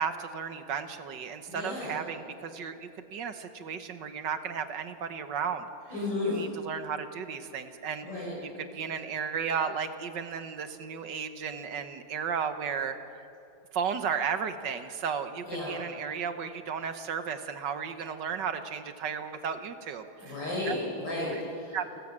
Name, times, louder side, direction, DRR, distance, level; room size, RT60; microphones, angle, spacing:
voice 1, 0.0-5.7 6.2-13.0 13.7-20.7 21.3-21.4 21.7-22.0, right 7 dB, 65° right, 9 dB, 1.6 m, -34 dB
voice 2, 1.5-2.0 5.9-6.4 8.0-8.4 15.4-15.8 20.2-21.8, left 2 dB, 65° left, -4 dB, 5.4 m, -33 dB
28.0 x 14.0 x 7.4 m, 2.6 s
omnidirectional pair, 2.1 m